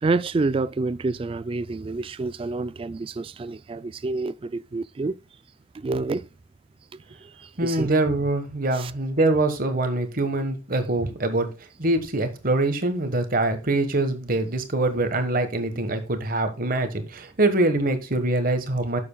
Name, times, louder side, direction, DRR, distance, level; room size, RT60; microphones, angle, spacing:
voice 1, 0.0-5.2 5.7-6.3 6.9-7.9 8.7-8.9, right 3 dB, 30° right, 0.3 m, -28 dB
voice 2, 7.6-11.5 11.8-19.0, right 2 dB, 45° right, 1.4 m, -24 dB
10.5 x 7.0 x 2.3 m
head